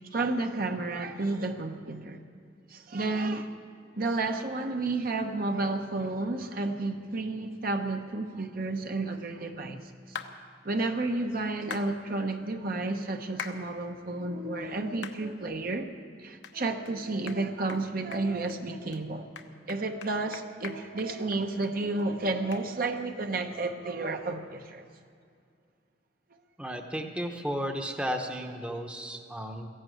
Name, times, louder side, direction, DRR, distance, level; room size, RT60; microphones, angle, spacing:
voice 1, 0.1-2.2 2.7-3.5 4.0-10.2 10.6-15.9 16.2-19.3 19.7-24.8, right 2 dB, 55° right, 5 dB, 1.0 m, -31 dB
sound 1, 10.2-10.3 11.7-11.9 13.4-13.6 14.1-14.2 15.0-15.2 15.7-15.8 16.4-16.6 16.9-17.0 17.3-17.4 17.7-17.8 18.1-18.6 18.9-19.0 19.4-21.7 22.0-22.1 22.5-22.6, left 6 dB, 80° left, 1.0 m, -41 dB
voice 2, 26.6-29.7, equal, 5° right, 4 dB, 0.9 m, -34 dB
15.0 x 11.0 x 7.8 m, 2.3 s
head